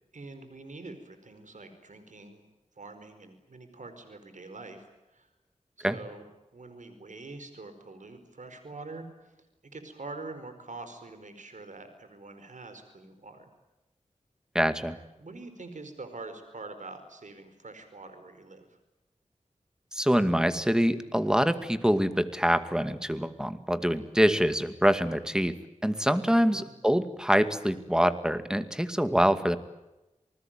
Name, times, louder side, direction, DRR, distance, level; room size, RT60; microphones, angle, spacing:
voice 1, 0.1-2.4 2.8-4.8 5.1-5.3 5.8-6.2 6.5-9.1 9.6-13.5 15.2-18.7 26.3-26.7, right 3 dB, 75° right, 9 dB, 4.8 m, -45 dB
voice 2, 14.5-15.0 19.9-25.6 25.8-29.6, equal, 5° right, 10 dB, 2.2 m, -25 dB
28.0 x 20.0 x 9.1 m, 1.0 s
wide cardioid pair, 55°, 13 cm